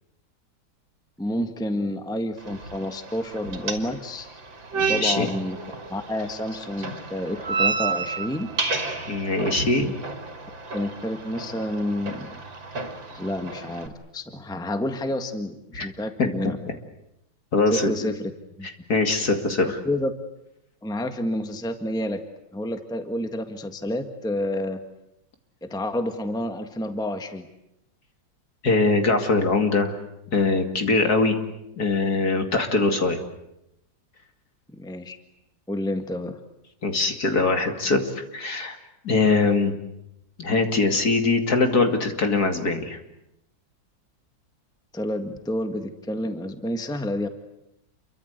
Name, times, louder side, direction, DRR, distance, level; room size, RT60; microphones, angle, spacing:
voice 1, 1.2-4.3 4.7-5.6 5.9-8.5 9.8-9.9 10.7-12.3 13.1-16.6 17.7-18.3 18.6-18.7 19.8-20.1 20.8-22.2 22.5-24.8 25.6-27.5 34.7-35.2 35.7-36.4 44.9-47.3, left 1 dB, ahead, 7 dB, 1.5 m, -29 dB
sound 1, 2.4-13.9, right 4 dB, 80° right, 3.6 m, -31 dB
voice 2, 4.8-5.3 9.1-9.9 15.7-15.9 17.5-18.1 18.9-19.8 28.6-30.0 30.3-31.4 31.8-33.2 36.8-38.8 39.0-39.8 40.4-43.0, left 3 dB, 55° left, 5 dB, 3.0 m, -22 dB
29.0 x 23.5 x 8.2 m, 0.85 s
omnidirectional pair, 2.1 m